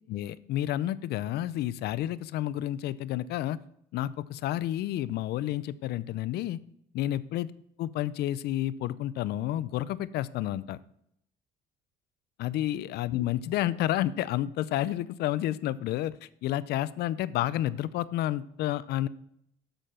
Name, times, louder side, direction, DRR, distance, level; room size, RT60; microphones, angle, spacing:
voice 1, 0.1-3.6 3.9-6.6 6.9-7.5 7.8-10.8 12.4-16.1 16.4-19.1, left 13 dB, 75° left, 18 dB, 0.5 m, -30 dB
7.9 x 6.7 x 5.6 m, 0.74 s
cardioid pair, 110°, 17 cm